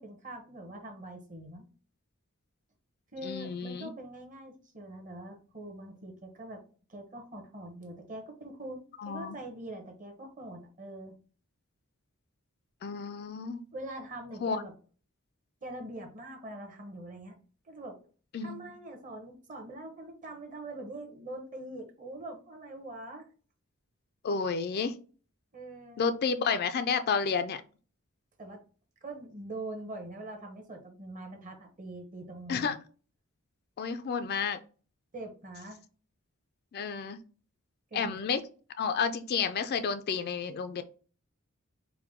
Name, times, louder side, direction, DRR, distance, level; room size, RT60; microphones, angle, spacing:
voice 1, 0.0-1.7 3.1-6.6 6.9-11.1 13.7-14.7 15.6-17.3 17.6-18.0 18.4-23.3 25.5-26.0 28.4-28.6 29.0-32.8 35.1-35.8 37.9-38.2, right 1 dB, 35° right, 3 dB, 0.9 m, -43 dB
voice 2, 3.2-3.9 9.0-9.4 12.8-13.6 14.4-14.6 18.3-18.7 24.2-25.0 26.0-27.6 32.5-32.7 33.8-34.6 36.7-37.2 37.9-38.4 38.8-40.8, left 5 dB, 45° left, 10 dB, 0.3 m, -31 dB
4.6 x 2.2 x 3.6 m, 0.39 s
head